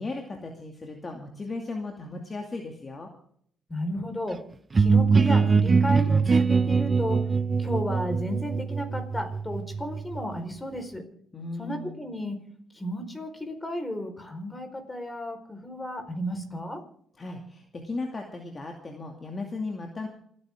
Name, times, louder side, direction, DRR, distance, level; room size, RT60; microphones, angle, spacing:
voice 1, 0.0-3.1 11.3-12.0 17.2-20.1, left 3 dB, 30° left, 2 dB, 2.4 m, -36 dB
voice 2, 3.7-4.4 4.7-7.2 7.6-11.0 11.6-12.4 12.7-16.8, equal, 15° left, 6 dB, 4.6 m, -33 dB
sound 1, 4.7-10.4, right 5 dB, 30° right, 0.6 m, -23 dB
28.0 x 9.8 x 3.7 m, 0.63 s
cardioid pair, 90°, 0 cm